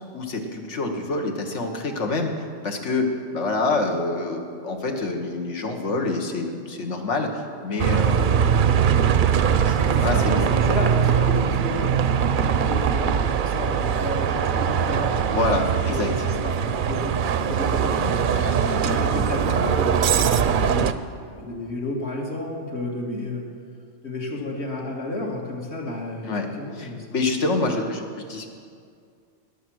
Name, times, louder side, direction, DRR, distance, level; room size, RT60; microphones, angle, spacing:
voice 1, 0.1-2.3 2.6-3.1 3.3-8.6 9.0-9.3 9.6-10.4 15.3-16.1 18.3-19.3 26.2-26.5 26.8-28.0 28.3-28.5, left 3 dB, 85° left, 3 dB, 1.6 m, -27 dB
Bus, 7.8-20.9, right 8 dB, 60° right, 0.6 m, -21 dB
voice 2, 9.8-12.0 12.3-18.3 18.7-20.9 21.3-23.5 24.0-27.1, left 2 dB, 65° left, -2 dB, 2.2 m, -31 dB
19.5 x 7.2 x 6.3 m, 2.2 s
omnidirectional pair, 1.2 m